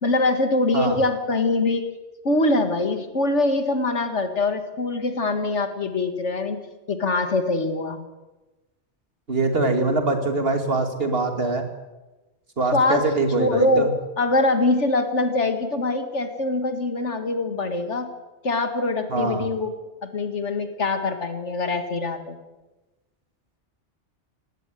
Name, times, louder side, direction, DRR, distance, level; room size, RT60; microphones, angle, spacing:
voice 1, 0.0-1.9 2.2-6.6 6.9-8.0 12.7-13.1 13.4-13.9 14.2-18.1 18.4-19.7 20.0-22.4, left 2 dB, 75° left, 8 dB, 2.2 m, -23 dB
voice 2, 9.3-11.6 12.6-13.9 19.1-19.5, right 3 dB, 55° right, 6 dB, 2.8 m, -23 dB
18.0 x 17.5 x 9.3 m, 1.1 s
omnidirectional pair, 1.2 m